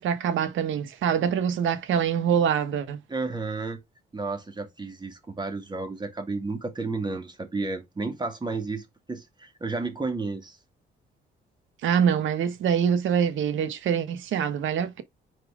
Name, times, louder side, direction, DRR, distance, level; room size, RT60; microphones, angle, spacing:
voice 1, 0.0-3.0 11.8-15.0, right 8 dB, 80° right, 1.3 m, -25 dB
voice 2, 3.1-3.8 4.1-10.6, right 3 dB, 20° right, 2.3 m, -32 dB
4.8 x 4.3 x 4.8 m
cardioid pair, 90°, 20 cm